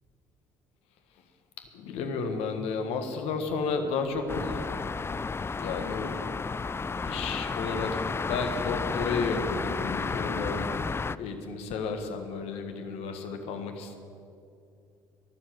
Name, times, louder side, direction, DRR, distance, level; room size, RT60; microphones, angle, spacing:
voice 1, 1.7-4.6 5.5-6.2 7.0-10.7 11.1-13.9, left 4 dB, 70° left, 6 dB, 1.6 m, -32 dB
sound 1, 4.3-11.2, left 4 dB, 25° left, 0.5 m, -32 dB
22.0 x 7.6 x 7.8 m, 2.5 s
hypercardioid pair, 55°, 11 cm